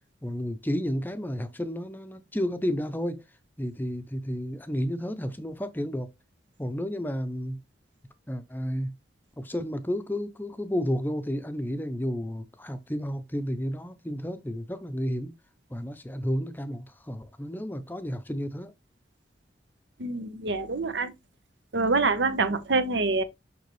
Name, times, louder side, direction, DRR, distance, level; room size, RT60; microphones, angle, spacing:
voice 1, 0.2-3.2 3.6-6.1 6.6-7.6 8.3-8.9 9.4-15.3 15.7-18.7, equal, 10° left, 0.6 m, -31 dB
voice 2, 20.0-21.1 21.7-23.2, right 3 dB, 75° right, 1.1 m, -26 dB
6.6 x 5.6 x 3.2 m
head